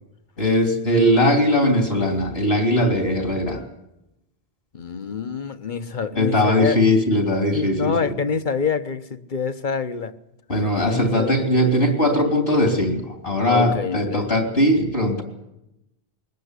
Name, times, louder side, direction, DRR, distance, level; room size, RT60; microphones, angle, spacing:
voice 1, 0.4-3.7 6.2-8.1 10.5-15.2, left 1 dB, 75° left, 4 dB, 3.6 m, -20 dB
voice 2, 4.7-6.8 7.5-10.1 10.9-11.4 13.5-14.2, left 6 dB, 50° left, 11 dB, 1.2 m, -26 dB
22.0 x 19.0 x 8.3 m, 0.88 s
omnidirectional pair, 1.0 m